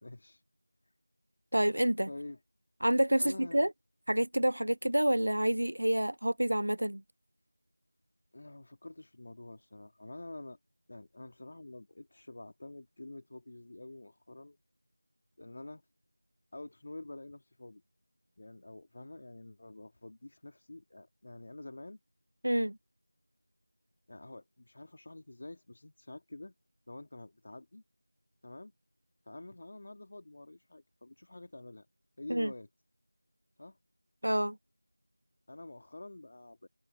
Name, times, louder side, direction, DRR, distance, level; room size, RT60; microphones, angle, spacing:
voice 1, 0.0-0.4 2.1-2.4 3.2-3.7 8.3-10.6 10.9-14.6 15.4-15.8 16.5-17.8 18.4-22.0 24.1-26.5 26.9-27.8 28.4-28.7 29.3-31.9 32.2-32.7 33.6-33.8 35.5-36.7, left 2 dB, 35° left, 2.0 m, -47 dB
voice 2, 1.5-2.1 2.8-3.7 4.1-7.0 22.4-22.8 32.3-32.5 34.2-34.6, right 1 dB, 75° right, 0.6 m, -28 dB
figure-of-eight pair, 175°, 0 cm